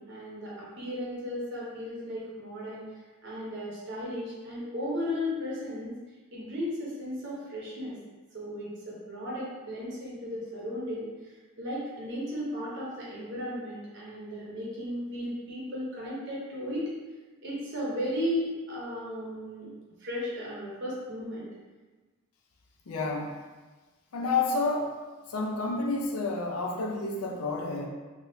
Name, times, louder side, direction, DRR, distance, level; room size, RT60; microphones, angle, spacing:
voice 1, 0.0-2.8 3.2-5.9 6.3-8.0 8.3-11.1 11.6-16.9 17.4-19.7 20.0-21.5, left 1 dB, 55° right, -6 dB, 0.7 m, -35 dB
voice 2, 22.9-23.4 24.1-24.9 25.3-27.9, left 3 dB, 85° left, 0 dB, 0.5 m, -29 dB
3.3 x 2.3 x 2.7 m, 1.3 s
head